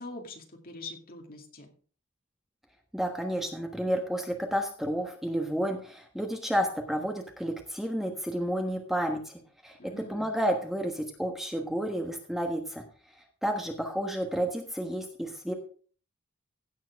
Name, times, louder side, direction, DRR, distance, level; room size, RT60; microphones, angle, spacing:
voice 1, 0.0-1.7 9.8-10.3, left 2 dB, 40° left, 3 dB, 2.2 m, -43 dB
voice 2, 2.9-12.8 13.4-15.5, equal, ahead, 3 dB, 1.3 m, -31 dB
16.0 x 7.4 x 3.5 m, 0.41 s
head